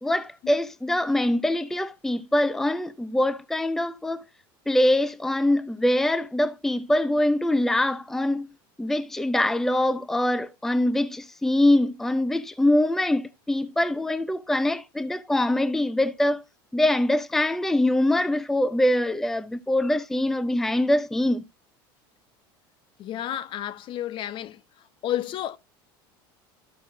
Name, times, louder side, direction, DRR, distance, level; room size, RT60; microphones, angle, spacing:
voice 1, 0.0-4.2 4.7-8.5 8.8-16.4 16.7-21.4, left 1 dB, 5° left, 0.5 m, -23 dB
voice 2, 23.0-24.6 25.0-25.6, left 11 dB, 45° left, 0.9 m, -31 dB
13.5 x 6.1 x 2.5 m
supercardioid pair, 105°, 12 cm